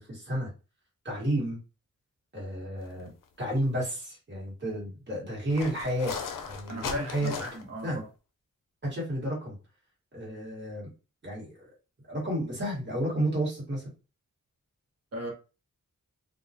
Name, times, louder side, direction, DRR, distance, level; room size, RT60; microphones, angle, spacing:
voice 1, 0.1-0.5 1.0-1.6 2.3-3.1 3.4-6.1 6.4-7.3 7.8-8.0 8.8-9.6 10.1-10.9 11.2-11.7 12.1-13.9, right 1 dB, 35° right, -5 dB, 1.2 m, -31 dB
sound 1, 3.2-3.4 3.8-3.9 5.5-7.8, left 6 dB, 80° left, 0.5 m, -37 dB
voice 2, 6.7-8.0 15.1-15.3, equal, 50° right, 0 dB, 0.9 m, -36 dB
2.2 x 2.1 x 2.6 m, 0.32 s
wide cardioid pair, 115°, 32 cm